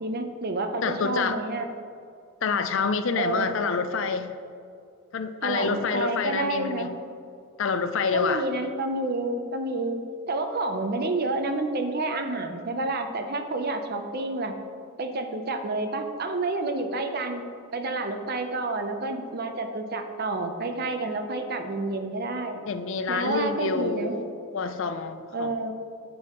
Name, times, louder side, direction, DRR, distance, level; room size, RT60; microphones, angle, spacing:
voice 1, 0.0-1.7 3.2-3.5 5.4-6.9 8.1-14.5 15.0-17.5 17.7-22.6 23.1-24.2 25.3-25.7, right 2 dB, 45° right, 6 dB, 0.6 m, -29 dB
voice 2, 0.8-1.4 2.4-4.3 5.1-7.0 7.6-8.5 22.7-25.7, left 5 dB, 60° left, 10 dB, 0.5 m, -27 dB
10.0 x 7.8 x 3.0 m, 2.4 s
head